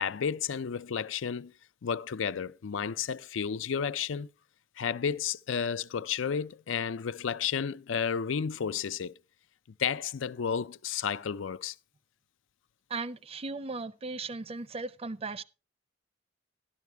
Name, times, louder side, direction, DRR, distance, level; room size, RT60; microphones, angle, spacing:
voice 1, 0.0-1.5 1.8-4.3 4.8-9.1 9.8-11.7, left 7 dB, 85° left, 0.5 m, -32 dB
voice 2, 12.9-15.4, right 3 dB, 30° right, 0.6 m, -37 dB
12.0 x 12.0 x 3.4 m
head